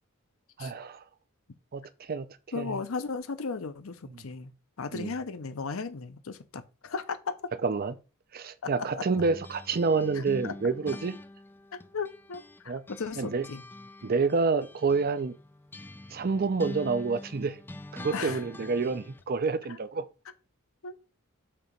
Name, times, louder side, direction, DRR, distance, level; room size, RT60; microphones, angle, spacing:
voice 1, 0.6-1.0 1.7-2.3 2.6-2.8 4.9-5.1 7.6-7.9 8.3-11.1 12.7-12.8 13.2-13.5 14.0-15.3 16.1-17.6 17.9-20.1, right 4 dB, 45° right, 0.5 m, -28 dB
voice 2, 2.5-4.5 4.8-7.3 10.1-10.5 11.7-13.6 18.1-18.7 19.7-19.8 20.8-20.9, left 4 dB, 70° left, 0.7 m, -36 dB
sound 1, 9.1-12.6 12.9-19.3, left 1 dB, 10° left, 0.4 m, -45 dB
6.7 x 2.9 x 5.1 m
head